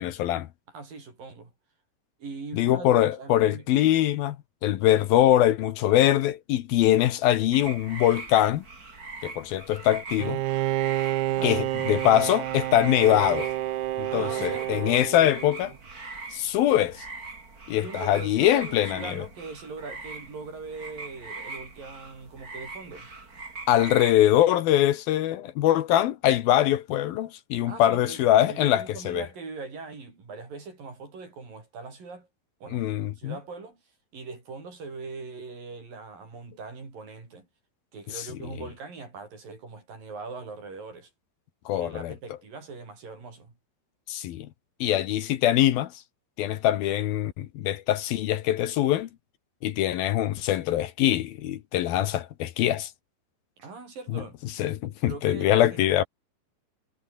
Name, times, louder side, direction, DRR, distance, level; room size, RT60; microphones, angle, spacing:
voice 1, 0.0-0.5 2.5-4.4 4.6-8.6 9.2-10.4 11.4-13.5 14.0-15.7 16.3-17.1 17.7-19.2 23.7-29.2 32.7-33.4 38.1-38.2 41.7-42.1 44.1-44.5 44.8-45.9 46.4-49.1 49.6-52.9 54.1-54.2 54.6-56.0, left 12 dB, 70° left, 2.8 m, -23 dB
voice 2, 0.7-1.5 2.2-3.7 11.3-11.6 14.1-15.2 17.8-23.1 27.7-32.3 32.6-32.9 33.2-33.8 34.1-37.5 37.9-41.1 41.7-43.5 53.6-54.4 55.1-56.1, right 4 dB, 60° right, 8.9 m, -41 dB
sound 1, 7.5-24.1, right 3 dB, 25° right, 3.7 m, -42 dB
Bowed string instrument, 10.2-15.8, right 15 dB, 75° right, 1.8 m, -29 dB
omnidirectional pair, 4.6 m